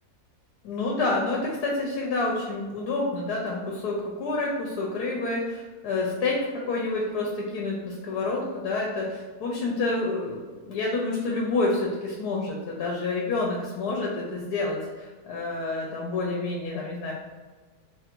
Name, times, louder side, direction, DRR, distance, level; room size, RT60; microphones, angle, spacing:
voice 1, 0.6-17.1, left 3 dB, 85° left, -2 dB, 1.2 m, -28 dB
3.2 x 2.5 x 4.4 m, 1.4 s
omnidirectional pair, 1.6 m